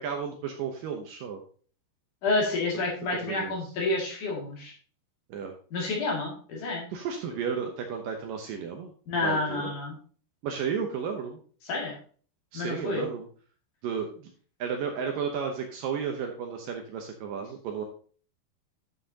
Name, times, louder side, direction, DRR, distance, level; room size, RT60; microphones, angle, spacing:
voice 1, 0.0-1.4 2.7-2.9 3.3-3.5 5.3-5.5 6.9-8.9 9.2-9.7 10.4-11.4 12.5-13.3 13.8-14.3 14.6-17.8, right 6 dB, 70° right, 3 dB, 2.3 m, -33 dB
voice 2, 2.2-4.7 5.7-6.9 9.1-9.9 11.7-11.9 12.5-13.1, left 3 dB, 55° left, -3 dB, 3.5 m, -29 dB
9.9 x 7.8 x 2.8 m, 0.43 s
omnidirectional pair, 4.7 m